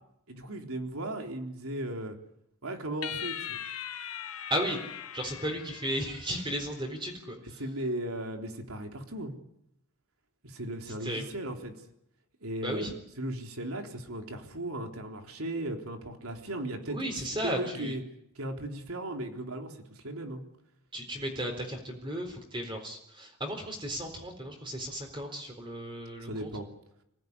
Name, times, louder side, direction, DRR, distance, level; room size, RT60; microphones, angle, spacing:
voice 1, 0.3-2.2 2.6-3.6 7.6-9.4 10.4-11.7 12.4-17.2 17.4-18.0 18.4-20.4 26.2-26.7, right 1 dB, 80° right, 3 dB, 3.8 m, -36 dB
sound 1, 3.0-6.6, left 9 dB, 80° left, 1.4 m, -40 dB
voice 2, 5.1-7.6 11.0-11.3 12.6-12.9 16.9-17.9 20.9-26.5, equal, 25° right, 4 dB, 4.0 m, -35 dB
27.0 x 17.0 x 9.7 m, 0.79 s
head